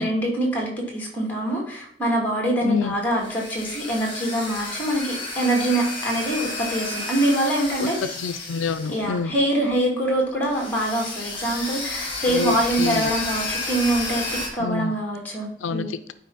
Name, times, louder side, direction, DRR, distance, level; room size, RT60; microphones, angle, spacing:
voice 1, 0.0-8.0 8.9-15.9, right 1 dB, 10° left, -1 dB, 2.6 m, -24 dB
voice 2, 2.6-2.9 7.8-7.9 8.2-9.3 12.2-13.1 14.6-15.0 15.6-16.1, left 5 dB, 85° left, 11 dB, 0.4 m, -27 dB
sound 1, 2.8-9.4 9.7-9.8 10.4-14.5, left 2 dB, 30° left, 2.7 m, -31 dB
11.5 x 4.8 x 4.0 m, 0.63 s
head